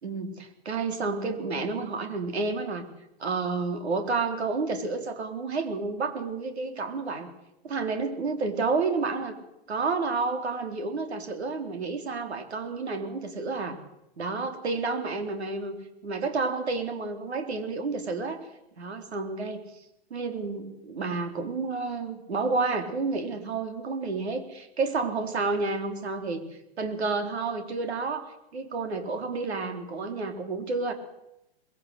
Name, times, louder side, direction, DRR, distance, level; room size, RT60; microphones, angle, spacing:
voice 1, 0.0-2.9 3.2-7.3 7.6-9.4 9.7-13.8 14.2-15.8 16.0-18.4 18.8-19.6 20.1-26.4 26.8-30.9, right 4 dB, 90° right, 6 dB, 3.9 m, -30 dB
21.0 x 16.5 x 8.2 m, 0.85 s
hypercardioid pair, 130°, 32 cm